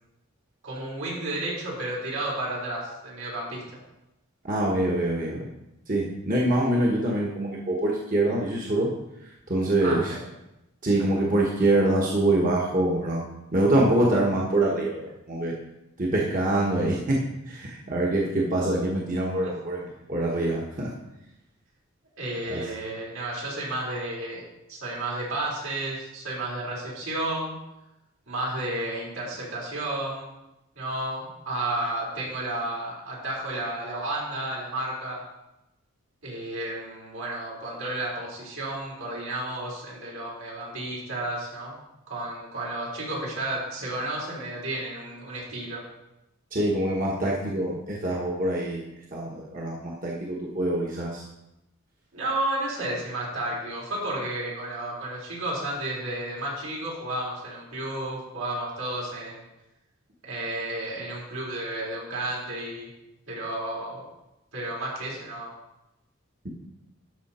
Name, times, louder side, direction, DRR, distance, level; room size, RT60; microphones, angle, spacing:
voice 1, 0.6-3.6 9.8-10.1 22.2-24.4 24.7-27.5 28.3-30.3 30.8-35.2 36.2-41.8 42.1-45.8 52.1-59.5 60.2-62.9 63.3-64.0 64.5-65.5, right 1 dB, 80° right, -5 dB, 4.1 m, -32 dB
voice 2, 4.4-5.4 5.9-8.9 9.5-10.0 10.8-13.2 13.5-15.5 16.0-17.2 17.5-20.9 22.5-22.6 46.5-48.8 49.1-51.3, right 1 dB, 40° right, -3 dB, 1.3 m, -25 dB
12.5 x 5.8 x 4.3 m, 0.92 s
head